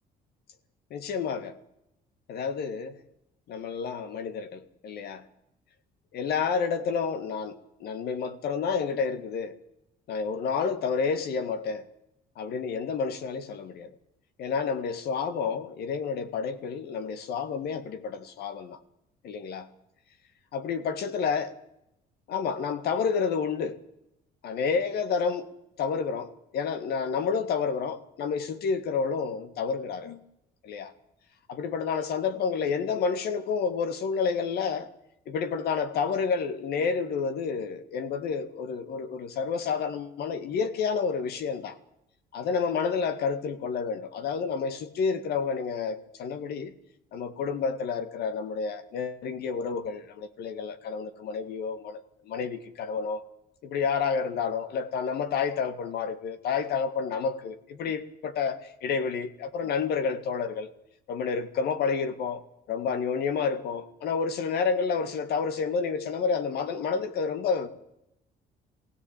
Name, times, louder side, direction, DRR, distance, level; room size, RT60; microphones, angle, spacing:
voice 1, 0.9-1.6 2.3-3.0 3.5-5.2 6.1-9.6 10.1-11.9 12.4-13.9 14.4-18.8 19.2-19.7 20.5-21.6 22.3-23.8 24.4-25.5 25.8-30.2 30.6-30.9 31.5-34.9 35.3-41.8 42.3-46.7 47.1-53.2 53.6-60.7 61.1-62.4 62.7-67.7, left 5 dB, 70° left, 1.9 m, -30 dB
20.5 x 16.5 x 9.0 m
cardioid pair, 110°, 17 cm